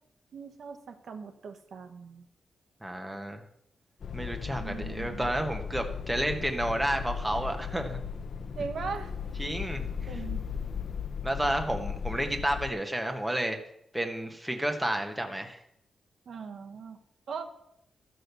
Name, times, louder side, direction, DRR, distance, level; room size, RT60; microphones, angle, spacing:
voice 1, 0.3-2.2 4.6-5.4 8.5-9.1 10.1-10.4 16.3-17.0 17.3-17.5, right 5 dB, 65° right, 6 dB, 1.2 m, -39 dB
voice 2, 2.8-3.4 4.1-8.0 9.4-9.8 11.2-13.6 13.9-15.6, right 1 dB, 5° right, 4 dB, 1.2 m, -31 dB
sound 1, 4.0-12.7, left 7 dB, 55° left, 0.5 m, -36 dB
13.0 x 6.4 x 6.8 m, 0.78 s
wide cardioid pair, 145°, 0 cm